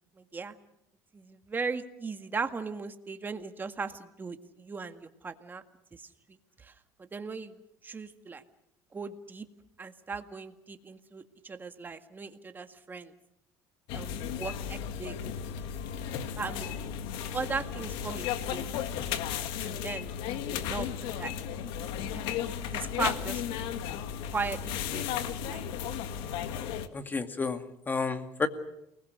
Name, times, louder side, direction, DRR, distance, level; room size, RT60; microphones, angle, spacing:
voice 1, 0.2-0.5 1.1-5.6 5.9-6.0 6.6-6.7 7.0-7.6 7.8-8.4 8.9-9.5 9.8-13.1 13.9-15.1 16.4-16.9 17.3-18.7 19.6-20.1 20.5-21.3 21.7-21.9 22.1-23.4 24.3-25.7, right 4 dB, 20° right, 8 dB, 1.9 m, -38 dB
sound 1, 13.9-26.9, left 9 dB, 75° left, 1.8 m, -34 dB
voice 2, 26.9-28.5, left 4 dB, 20° left, 8 dB, 2.2 m, -31 dB
29.0 x 20.5 x 6.6 m, 0.81 s
supercardioid pair, 110°, 9 cm